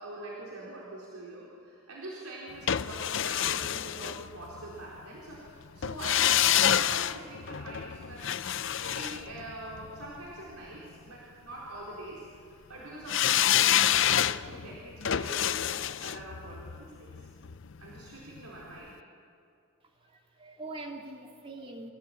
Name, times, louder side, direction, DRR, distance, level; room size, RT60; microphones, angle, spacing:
voice 1, 0.0-8.3 8.8-17.3 17.8-18.9, right 1 dB, 85° right, -5 dB, 4.3 m, -44 dB
sound 1, 2.7-4.8 5.8-10.1 13.1-18.1 18.4-18.5, left 11 dB, 55° left, 0.5 m, -28 dB
voice 2, 20.0-21.9, right 2 dB, 25° right, 2 dB, 2.2 m, -43 dB
25.0 x 17.0 x 8.9 m, 2.4 s
head